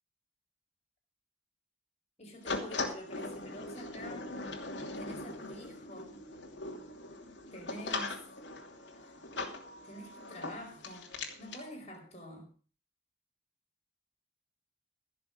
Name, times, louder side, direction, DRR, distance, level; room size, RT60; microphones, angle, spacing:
voice 1, 2.2-4.3 4.9-6.2 7.5-8.2 8.9-9.2 9.8-12.5, equal, 35° left, 1 dB, 5.0 m, -48 dB
sound 1, 2.4-11.6, left 3 dB, 70° left, 2.9 m, -40 dB
16.0 x 7.1 x 6.7 m, 0.40 s
head